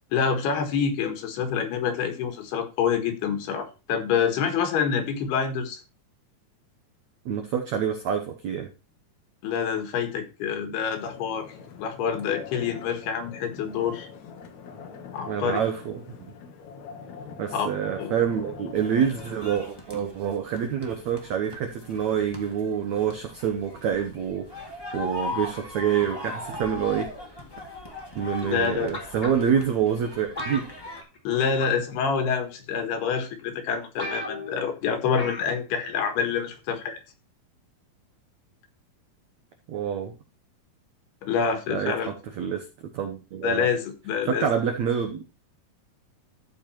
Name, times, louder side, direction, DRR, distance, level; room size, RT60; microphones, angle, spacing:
voice 1, 0.1-5.8 9.4-11.5 11.8-14.1 15.1-15.6 17.5-17.7 18.0-18.1 28.5-29.0 31.3-37.0 41.2-42.1 43.4-44.5, left 6 dB, 85° left, 7 dB, 3.6 m, -27 dB
voice 2, 7.3-8.7 15.3-16.2 17.4-27.1 28.2-30.7 39.7-40.1 41.7-42.7 42.9-43.7 44.3-45.2, right 8 dB, 70° right, 5 dB, 1.8 m, -27 dB
sound 1, 10.9-19.7, left 6 dB, 55° left, 2.4 m, -43 dB
sound 2, 18.7-31.0, left 2 dB, 30° left, 0.4 m, -39 dB
sound 3, 28.9-29.6 30.4-31.3 31.6-31.9 32.8-32.9 33.4-33.5 33.7-33.8 34.0-34.6 35.2-35.5 35.8-35.9, left 1 dB, 10° left, 3.4 m, -35 dB
14.0 x 5.0 x 4.4 m, 0.30 s
omnidirectional pair, 4.5 m